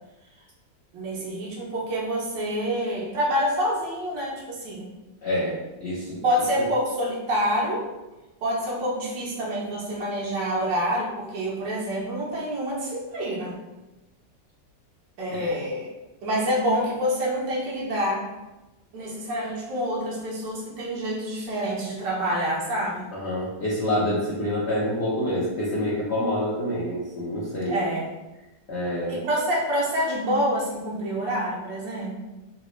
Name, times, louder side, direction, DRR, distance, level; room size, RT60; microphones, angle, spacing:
voice 1, 0.9-4.9 6.2-7.9 8.4-13.6 15.2-15.9 16.2-18.2 18.9-23.1 27.7-28.1 29.1-32.2, equal, 80° right, -4 dB, 1.5 m, -27 dB
voice 2, 5.2-6.2 15.3-15.5 23.1-27.8 28.7-29.1, left 1 dB, 55° left, -7 dB, 0.8 m, -27 dB
3.9 x 2.3 x 3.1 m, 1.1 s
omnidirectional pair, 1.9 m